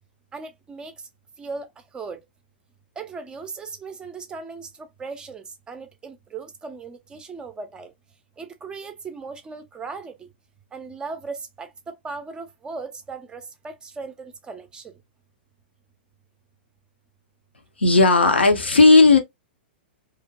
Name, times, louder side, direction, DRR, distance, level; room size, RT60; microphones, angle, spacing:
voice 1, 0.3-0.9 1.4-1.7 1.9-2.2 3.0-7.9 8.4-10.3 10.7-14.9, right 4 dB, 15° right, 0.4 m, -37 dB
voice 2, 17.8-19.2, left 3 dB, 80° left, 0.7 m, -14 dB
2.5 x 2.1 x 2.6 m
figure-of-eight pair, 105°, 6 cm